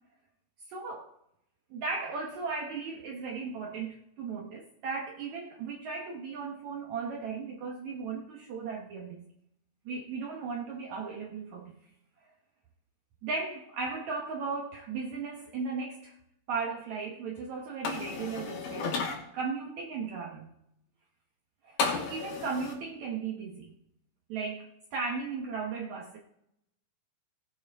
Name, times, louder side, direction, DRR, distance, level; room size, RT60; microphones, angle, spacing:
voice 1, 0.7-1.1 1.7-9.2 9.9-11.8 12.2-12.3 13.2-16.1 16.5-20.5 21.6-23.7 24.3-26.2, right 4 dB, 65° right, -1 dB, 2.2 m, -36 dB
sound 1, 17.8-19.2 21.8-22.7, left 4 dB, 85° left, 3.9 m, -32 dB
19.5 x 8.8 x 3.5 m, 0.77 s
omnidirectional pair, 4.2 m